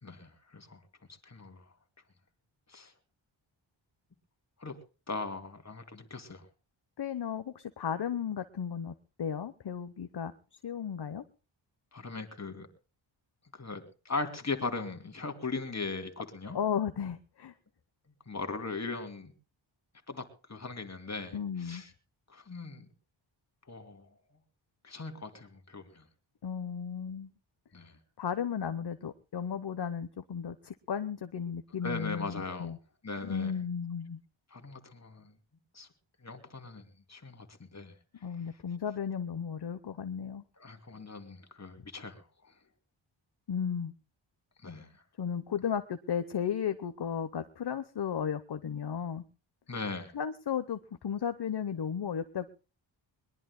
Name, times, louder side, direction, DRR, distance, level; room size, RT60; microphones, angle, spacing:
voice 1, 0.0-0.8 1.2-1.6 2.7-2.9 4.6-4.7 5.1-6.4 11.9-12.7 13.5-16.6 18.3-19.3 20.1-21.9 22.3-22.9 23.7-24.1 24.8-26.0 27.7-28.0 31.8-32.7 33.0-33.5 34.5-35.3 35.7-35.9 36.2-37.9 40.6-42.5 44.6-45.0 49.7-50.1, left 3 dB, 35° left, 2.7 m, -39 dB
voice 2, 7.0-11.2 16.5-17.5 21.3-21.8 26.4-27.3 28.2-32.8 33.2-34.2 38.2-40.4 43.5-43.9 45.2-49.2 50.1-52.5, left 7 dB, 55° left, 1.0 m, -34 dB
22.0 x 21.5 x 2.2 m
wide cardioid pair, 135°, 47 cm